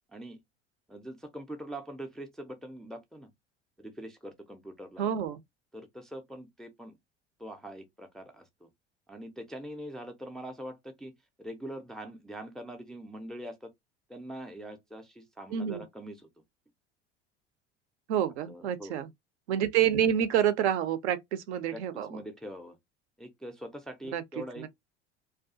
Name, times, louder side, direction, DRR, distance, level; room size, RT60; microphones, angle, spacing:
voice 1, 0.9-3.3 3.8-5.1 5.7-6.9 7.4-8.7 9.1-11.1 11.4-13.7 14.1-16.3 18.5-19.0 21.7-21.8 22.1-22.8 23.2-24.7, right 1 dB, ahead, 0.4 m, -43 dB
voice 2, 5.0-5.4 15.5-15.8 18.1-19.1 19.5-22.2 24.1-24.2 24.6-24.7, right 9 dB, 65° right, 0.5 m, -28 dB
2.3 x 2.3 x 2.4 m
figure-of-eight pair, 65°, 36 cm